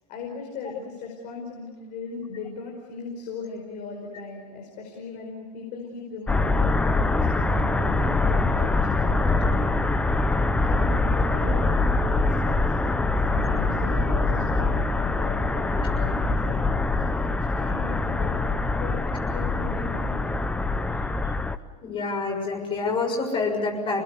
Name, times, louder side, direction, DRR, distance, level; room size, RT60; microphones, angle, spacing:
voice 1, 0.1-10.3 10.6-12.7 13.2-16.8 17.6-18.5 18.8-20.2, left 4 dB, 40° left, 1 dB, 5.2 m, -38 dB
sound 1, 6.3-21.6, left 3 dB, 5° left, 0.8 m, -24 dB
voice 2, 21.8-24.0, left 3 dB, 25° left, 2 dB, 6.5 m, -27 dB
29.0 x 20.5 x 8.3 m, 1.3 s
supercardioid pair, 145°, 21 cm